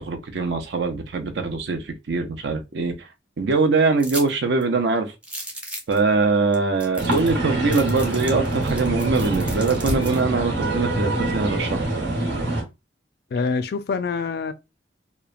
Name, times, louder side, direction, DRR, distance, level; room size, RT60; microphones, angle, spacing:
voice 1, 0.0-3.1 3.4-5.1 5.9-11.8, right 4 dB, 65° right, 0.5 m, -23 dB
sound 1, 4.0-4.3 4.6-4.7 5.2-6.0 6.5-6.6 6.8-7.4 7.7-10.2, right 1 dB, 5° right, 0.5 m, -35 dB
sound 2, 7.0-12.6, right 1 dB, 85° right, 1.1 m, -25 dB
voice 2, 13.3-14.5, left 4 dB, 55° left, 0.3 m, -25 dB
3.0 x 2.1 x 2.4 m
head